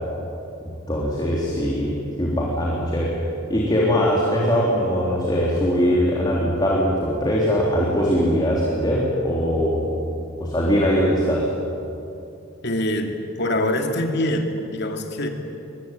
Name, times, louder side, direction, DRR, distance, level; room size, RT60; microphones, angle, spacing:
voice 1, 0.6-3.1 3.5-9.9 10.4-11.5, equal, 20° left, -4 dB, 3.6 m, -21 dB
voice 2, 12.6-15.3, left 1 dB, 55° left, 4 dB, 2.6 m, -24 dB
23.0 x 22.5 x 9.4 m, 2.7 s
head